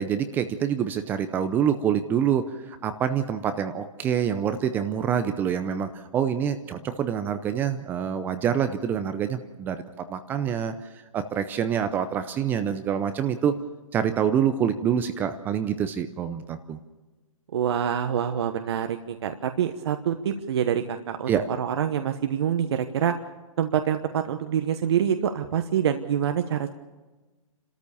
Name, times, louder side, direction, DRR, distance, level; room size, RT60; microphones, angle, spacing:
voice 1, 0.0-9.8 10.1-10.7 11.1-13.5 13.9-16.8 21.3-21.5, right 8 dB, 10° right, 10 dB, 0.6 m, -26 dB
voice 2, 17.5-23.2 23.6-26.7, right 9 dB, 50° right, 7 dB, 1.2 m, -26 dB
28.5 x 13.5 x 7.0 m, 1.2 s
hypercardioid pair, 155°, 18 cm